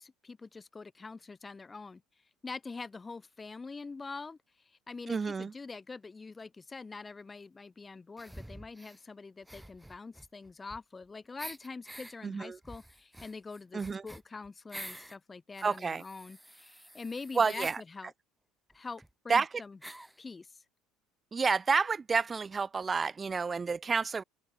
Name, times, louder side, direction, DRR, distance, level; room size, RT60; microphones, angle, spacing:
voice 1, 0.0-2.0 2.4-4.4 4.7-18.1 18.7-19.8 20.2-20.6, left 4 dB, 25° left, 3.4 m, -44 dB
voice 2, 5.1-5.5 12.2-12.6 13.7-14.0 15.6-16.0 17.4-17.8 19.3-19.5 21.3-24.2, right 5 dB, 30° right, 0.6 m, -29 dB
sound 1, 8.2-9.0 9.4-11.0 11.4-12.1 12.6-15.2 15.5-17.8 18.7-18.8 19.0-19.1 19.8-20.2, right 1 dB, 5° right, 2.0 m, -48 dB
open air
hypercardioid pair, 70°, 0 cm